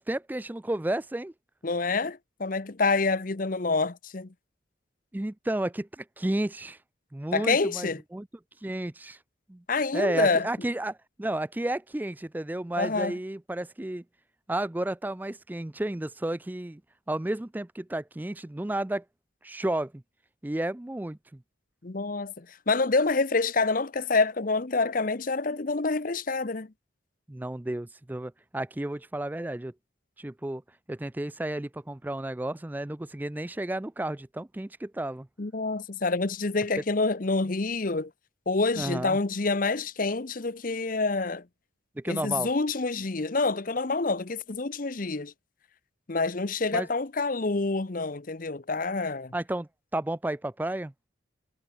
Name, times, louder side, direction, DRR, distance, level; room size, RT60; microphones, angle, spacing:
voice 1, 0.0-1.3 5.1-6.8 7.1-8.3 8.6-9.2 9.5-9.6 9.9-14.0 14.5-16.8 17.1-19.0 19.4-20.0 20.4-21.4 27.3-29.7 30.2-30.6 30.9-35.3 38.7-39.2 42.0-42.5 46.7-46.9 49.3-51.1, right 1 dB, 10° right, 0.3 m, -32 dB
voice 2, 1.6-4.3 7.3-8.0 9.7-10.5 12.8-13.1 21.8-26.7 35.4-38.1 38.5-41.4 42.1-45.3 46.1-49.3, left 3 dB, 45° left, 0.8 m, -27 dB
head